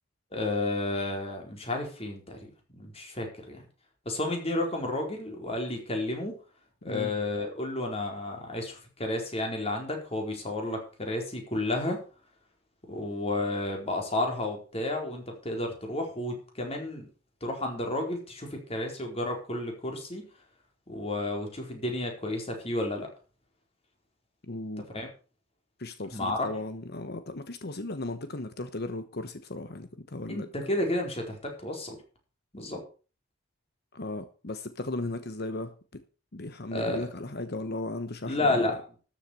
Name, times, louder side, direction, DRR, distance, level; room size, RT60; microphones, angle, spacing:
voice 1, 0.3-3.6 4.1-6.4 6.8-12.0 12.9-17.1 17.4-20.2 20.9-23.1 24.9-25.1 26.1-26.5 30.3-32.0 32.5-32.8 36.7-37.0 38.3-38.8, left 2 dB, 30° left, 2 dB, 4.4 m, -31 dB
voice 2, 24.5-24.8 25.8-30.5 33.9-36.0 36.3-38.8, left 2 dB, 50° left, 10 dB, 1.1 m, -36 dB
13.0 x 7.4 x 6.8 m, 0.36 s
head